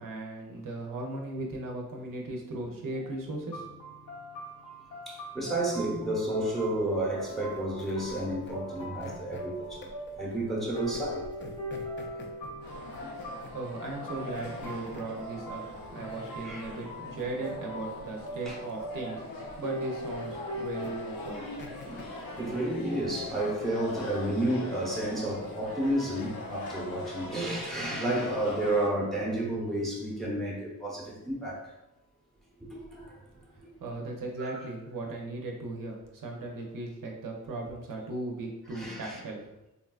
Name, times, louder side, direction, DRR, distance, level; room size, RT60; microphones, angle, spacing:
voice 1, 0.0-3.7 13.5-15.7 15.9-21.4 33.5-39.7, right 2 dB, 70° right, 0 dB, 0.6 m, -37 dB
sound 1, 3.5-21.3, equal, 70° left, 0.9 m, -41 dB
voice 2, 5.1-9.9 10.2-11.3 13.0-13.2 16.4-16.7 18.5-18.6 21.4-31.6 32.7-33.2 34.4-34.6 38.7-39.2, right 1 dB, ahead, -4 dB, 0.8 m, -31 dB
sound 2, 7.2-23.3, left 2 dB, 35° left, 0.4 m, -49 dB
sound 3, 12.6-28.9, left 2 dB, 85° left, 0.6 m, -42 dB
3.8 x 2.2 x 2.3 m, 0.91 s
wide cardioid pair, 120°, 35 cm